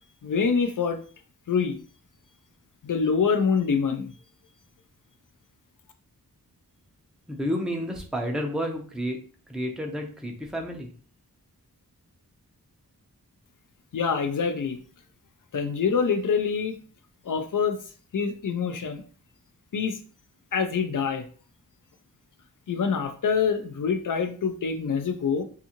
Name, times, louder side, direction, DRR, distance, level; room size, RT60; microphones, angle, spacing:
voice 1, 0.2-1.0 1.5-1.8 2.8-4.1 13.9-14.8 15.5-16.8 17.3-17.8 18.1-19.0 19.7-20.0 20.5-21.2 22.7-25.4, left 6 dB, 55° left, 7 dB, 0.5 m, -25 dB
voice 2, 7.3-9.2 9.5-10.9, equal, ahead, 1 dB, 0.5 m, -30 dB
2.6 x 2.4 x 2.8 m, 0.41 s
wide cardioid pair, 80°, 38 cm